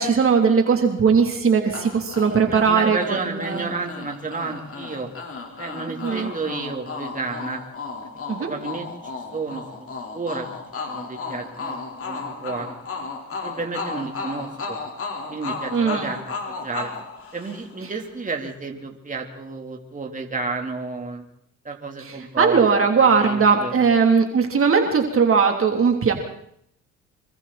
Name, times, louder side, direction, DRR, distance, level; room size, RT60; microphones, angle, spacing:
voice 1, 0.0-3.7 6.0-6.3 8.3-8.5 15.7-16.1 22.0-26.1, right 5 dB, 45° right, 3 dB, 3.5 m, -19 dB
sound 1, 1.7-17.9, left 4 dB, 45° left, 4.6 m, -34 dB
voice 2, 2.5-5.1 5.6-7.6 8.4-9.9 10.1-10.5 10.8-11.8 12.0-12.8 13.4-14.8 15.3-16.2 16.5-16.9 17.3-21.2 21.6-22.6 23.0-23.8, right 4 dB, 25° right, 2 dB, 3.8 m, -31 dB
27.0 x 24.0 x 4.4 m, 0.71 s
cardioid pair, 90°, 30 cm